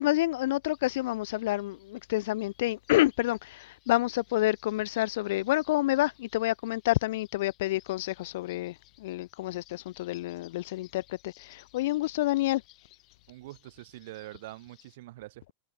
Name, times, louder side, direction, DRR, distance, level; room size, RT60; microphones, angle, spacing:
voice 1, 0.0-12.6, left 17 dB, 70° left, 0.3 m, -28 dB
sound 1, 0.6-15.0, left 18 dB, 40° left, 2.7 m, -61 dB
voice 2, 13.3-15.5, right 17 dB, 65° right, 2.5 m, -45 dB
hypercardioid pair, 125°, 0 cm